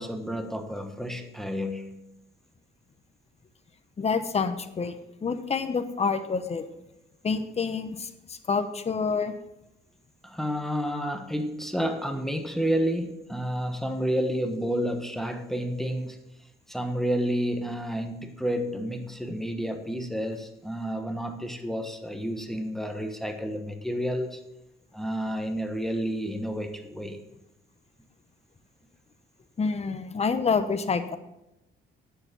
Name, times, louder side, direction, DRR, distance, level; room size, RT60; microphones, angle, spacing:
voice 1, 0.0-1.9 10.2-16.2 16.7-24.4 24.9-27.2, equal, ahead, 1.2 m, -30 dB
voice 2, 4.0-6.6 7.2-9.3 29.6-31.2, left 5 dB, 30° left, 0.9 m, -28 dB
9.6 x 6.9 x 5.9 m
cardioid pair, 90°, 20 cm